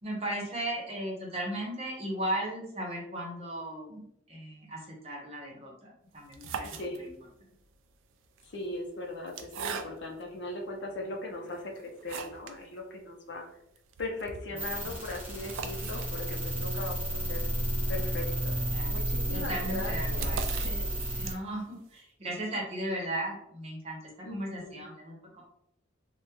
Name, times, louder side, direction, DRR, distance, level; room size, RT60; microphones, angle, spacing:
voice 1, 0.0-4.0 4.3-7.1 14.6-15.0 18.7-19.0 19.3-20.6 21.2-25.4, right 1 dB, 30° right, -1 dB, 0.8 m, -36 dB
sound 1, 6.2-7.4 8.2-10.3 10.9-11.0 11.5-12.6 12.9-13.0 13.3-13.4 13.8-21.6, right 5 dB, 80° right, 0.3 m, -42 dB
voice 2, 6.6-7.0 8.4-13.5 14.0-17.4 17.9-18.6 18.9-21.3 24.2-24.9, left 2 dB, 60° left, 1 dB, 0.6 m, -39 dB
sound 2, 14.6-21.3, right 1 dB, 10° right, 1.0 m, -32 dB
3.4 x 2.1 x 2.9 m, 0.78 s
head